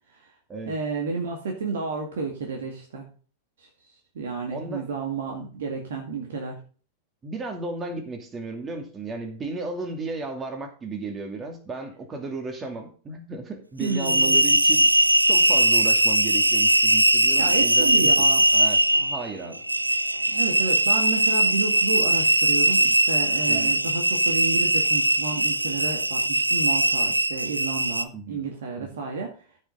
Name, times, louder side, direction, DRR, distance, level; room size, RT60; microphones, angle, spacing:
voice 1, 0.7-3.1 3.6-3.7 4.2-6.6 13.8-14.4 17.4-18.4 20.3-29.4, right 4 dB, 60° right, 2 dB, 2.1 m, -31 dB
voice 2, 4.5-4.8 5.3-5.4 7.2-14.9 15.3-18.3 18.5-19.6 23.5-23.7 28.1-28.4 28.8-29.0, right 3 dB, 20° right, 5 dB, 2.5 m, -34 dB
sound 1, 13.8-28.0, right 1 dB, 85° right, 0.5 m, -20 dB
14.5 x 5.7 x 3.9 m, 0.40 s
figure-of-eight pair, 90°, 0 cm